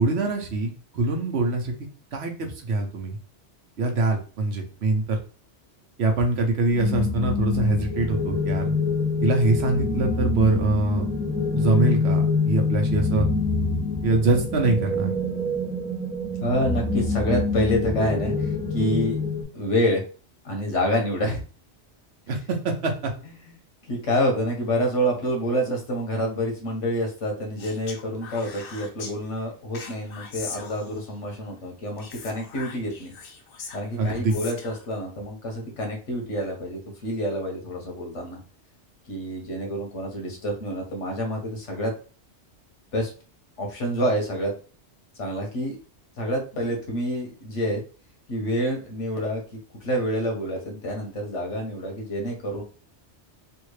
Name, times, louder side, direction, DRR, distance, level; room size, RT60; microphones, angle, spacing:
voice 1, 0.0-1.8 2.1-3.2 3.8-5.2 6.0-8.6 9.2-11.1 11.5-13.3 14.0-15.1 22.3-23.1 34.0-34.3, right 2 dB, 65° right, 2 dB, 1.0 m, -24 dB
sound 1, 6.7-19.4, left 3 dB, 10° right, 0.5 m, -26 dB
voice 2, 16.4-19.2 19.5-20.0 20.4-21.4 23.4-23.5 23.9-33.1 33.7-38.4 39.1-41.9 42.9-43.1 43.6-44.5 45.2-45.8 46.2-47.8 48.3-49.4 49.8-52.6, equal, 80° left, 2 dB, 1.4 m, -27 dB
Speech, 27.6-29.1 29.7-31.2 32.0-34.9, left 5 dB, 60° left, 0.7 m, -41 dB
3.4 x 2.4 x 3.2 m, 0.37 s
omnidirectional pair, 1.2 m